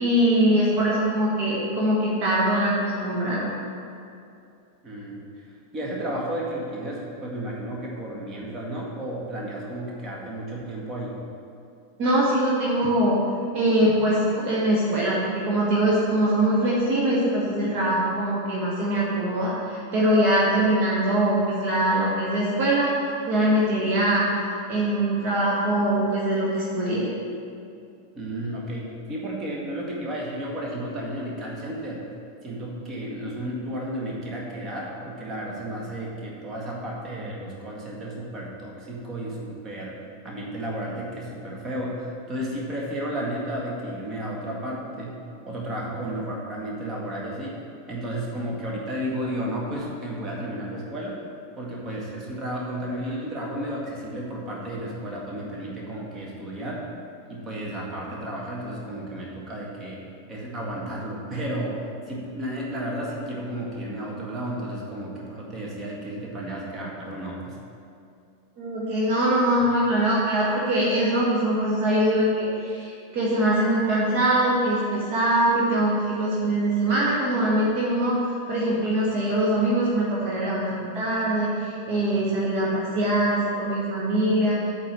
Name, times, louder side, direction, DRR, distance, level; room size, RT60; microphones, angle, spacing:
voice 1, 0.0-3.5 12.0-13.3 13.5-22.9 23.3-24.2 24.7-27.1 68.6-78.2 78.5-84.6, right 1 dB, 40° right, -6 dB, 1.5 m, -22 dB
voice 2, 4.8-5.3 5.7-11.2 28.1-32.1 32.4-40.0 40.2-45.2 45.5-51.2 51.6-56.9 57.3-67.6, right 1 dB, 25° right, -3 dB, 1.9 m, -33 dB
8.6 x 4.6 x 7.1 m, 2.5 s
figure-of-eight pair, 90°, 0 cm